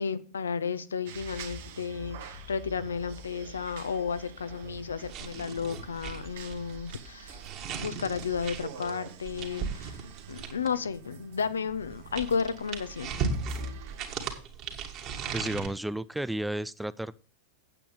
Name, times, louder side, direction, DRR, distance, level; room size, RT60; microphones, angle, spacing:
voice 1, 0.0-7.4 7.7-10.0 10.3-13.3, left 6 dB, 70° left, 13 dB, 0.8 m, -33 dB
Accelerating revving vroom, 1.1-8.4, left 4 dB, 25° left, 1.7 m, -50 dB
sound 1, 1.1-14.3, right 9 dB, 55° right, 1.4 m, -48 dB
sound 2, 5.1-10.9 11.7-15.7, right 5 dB, 35° right, 2.3 m, -37 dB
voice 2, 15.3-17.2, right 1 dB, 5° right, 18 dB, 0.4 m, -32 dB
8.7 x 8.6 x 4.9 m, 0.36 s
figure-of-eight pair, 90°, 0 cm